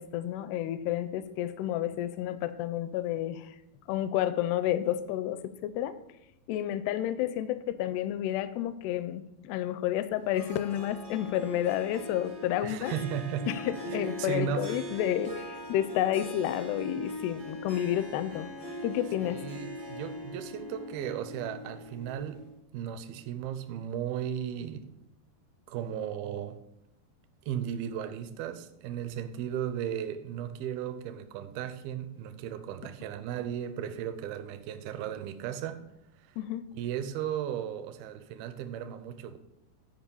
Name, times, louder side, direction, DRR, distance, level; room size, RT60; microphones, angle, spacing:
voice 1, 0.0-3.6 3.9-5.9 6.5-12.9 13.5-18.5 18.8-19.4 36.4-36.6, left 12 dB, 85° left, 2.5 m, -30 dB
Harp, 10.3-22.5, equal, 45° right, 0.5 m, -41 dB
voice 2, 12.6-13.5 13.9-14.8 19.2-24.9 25.7-26.6 27.5-35.9 36.2-36.4 36.7-39.4, right 9 dB, 75° right, 2.4 m, -36 dB
11.0 x 5.1 x 5.4 m
omnidirectional pair, 4.9 m